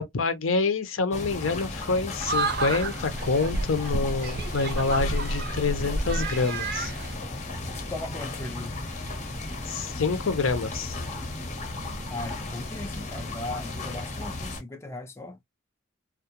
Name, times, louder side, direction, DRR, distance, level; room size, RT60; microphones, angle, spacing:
voice 1, 0.0-6.9 9.7-11.0, left 4 dB, 85° left, 0.6 m, -27 dB
sound 1, 1.1-14.6, left 2 dB, 35° left, 0.7 m, -35 dB
sound 2, 2.2-7.1, right 2 dB, 50° right, 0.5 m, -30 dB
voice 2, 7.5-8.8 12.1-15.4, left 2 dB, 15° left, 0.3 m, -38 dB
2.3 x 2.1 x 2.8 m
head